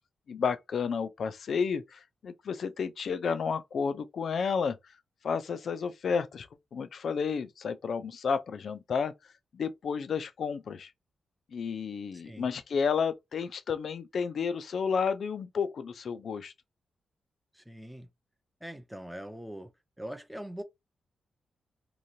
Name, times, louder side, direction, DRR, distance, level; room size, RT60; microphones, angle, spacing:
voice 1, 0.3-4.8 5.2-9.1 9.5-10.9 11.5-16.5, left 6 dB, 55° left, 0.4 m, -31 dB
voice 2, 17.5-18.1 18.6-19.7 20.0-20.6, equal, 5° right, 0.5 m, -42 dB
3.0 x 2.3 x 2.7 m
wide cardioid pair, 145°, 0 cm